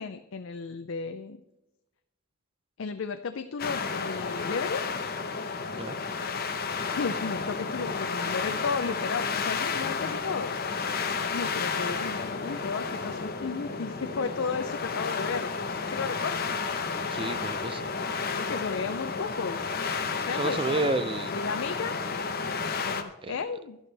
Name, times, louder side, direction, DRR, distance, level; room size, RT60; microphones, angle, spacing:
voice 1, 0.0-1.4 2.8-4.8 7.0-10.6 11.1-15.5 15.9-16.6 18.3-19.6 20.3-21.0 21.3-22.0 22.8-23.8, left 5 dB, 60° left, 9 dB, 0.5 m, -34 dB
sound 1, 3.6-23.0, left 5 dB, 45° left, 0.9 m, -32 dB
voice 2, 17.1-17.8 20.3-21.3 23.2-23.4, right 2 dB, 25° right, 12 dB, 0.5 m, -30 dB
11.5 x 10.5 x 3.4 m, 0.95 s
head